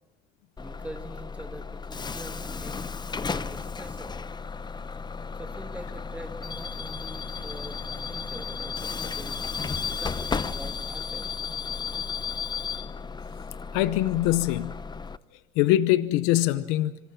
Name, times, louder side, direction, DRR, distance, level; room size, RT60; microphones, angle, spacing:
Bus / Alarm, 0.6-15.2, left 5 dB, 20° left, 0.8 m, -34 dB
voice 1, 0.6-2.8 3.2-4.2 5.3-9.7 10.0-11.3, right 1 dB, 5° right, 4 dB, 2.6 m, -44 dB
voice 2, 13.7-14.7 15.6-17.0, left 15 dB, 85° left, 14 dB, 0.8 m, -23 dB
26.0 x 25.5 x 5.9 m, 1.0 s
supercardioid pair, 85°, 19 cm